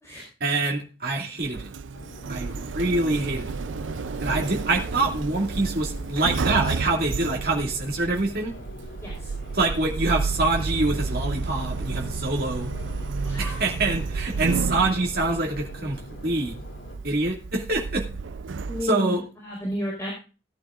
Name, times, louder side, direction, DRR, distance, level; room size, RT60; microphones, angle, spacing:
voice 1, 0.4-1.7 2.3-3.5 4.2-8.5 9.5-12.7 13.4-16.5 17.0-18.1 18.8-19.2, right 2 dB, 50° right, -1 dB, 2.1 m, -25 dB
Sliding door, 1.4-18.8, right 4 dB, 80° right, 0.5 m, -31 dB
Subway metro underground, 1.9-17.0, left 1 dB, 90° left, 3.6 m, -43 dB
voice 2, 9.0-9.3 13.2-13.6 18.7-20.1, equal, 15° left, -3 dB, 4.2 m, -32 dB
17.5 x 11.0 x 2.5 m, 0.34 s
head